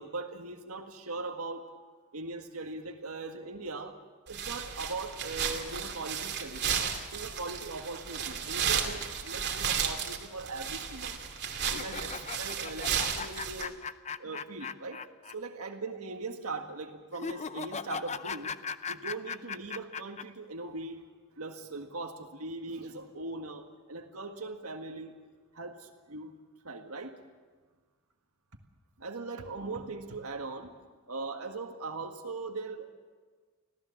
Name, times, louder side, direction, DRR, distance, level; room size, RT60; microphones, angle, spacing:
voice 1, 0.0-1.7 2.1-4.0 4.3-11.2 11.7-13.8 14.2-15.0 15.3-18.6 18.9-21.0 21.4-25.1 25.5-26.3 26.6-27.2 29.0-30.8 31.1-32.8, right 3 dB, 85° right, 3 dB, 1.7 m, -40 dB
sound 1, 4.3-13.6, right 7 dB, 50° right, 2.6 m, -34 dB
sound 2, 11.7-15.3 15.6-15.7 17.1-20.2, left 6 dB, 30° left, 0.6 m, -38 dB
26.0 x 16.5 x 7.2 m, 1.5 s
head